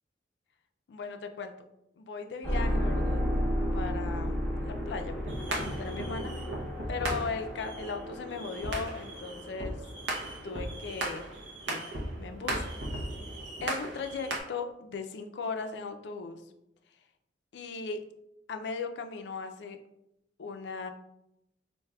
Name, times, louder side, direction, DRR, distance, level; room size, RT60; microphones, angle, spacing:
voice 1, 0.9-1.5 2.0-3.2 3.7-4.4 4.6-5.1 5.5-6.5 6.9-9.8 10.4-11.2 11.7-11.9 12.1-12.7 13.3-16.4 17.5-18.1 18.5-19.8 20.4-20.9, left 4 dB, 70° left, 7 dB, 0.4 m, -37 dB
sound 1, 2.4-11.5, equal, 5° left, 0.7 m, -33 dB
sound 2, 5.3-14.4, right 1 dB, 85° right, 0.8 m, -37 dB
4.6 x 2.6 x 2.3 m, 0.84 s
head